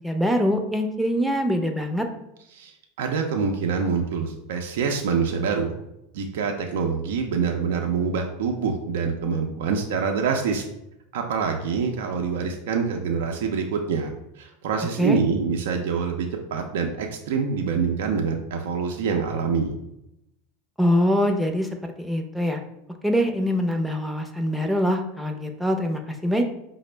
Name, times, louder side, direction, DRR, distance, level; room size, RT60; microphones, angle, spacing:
voice 1, 0.0-2.1 15.0-15.2 20.8-21.7 22.0-22.6 23.0-26.4, equal, 5° right, 3 dB, 0.5 m, -23 dB
voice 2, 2.5-5.7 6.1-10.7 11.1-19.7, right 5 dB, 75° right, 2 dB, 0.5 m, -26 dB
5.0 x 2.0 x 3.2 m, 0.84 s
hypercardioid pair, 100°, 0 cm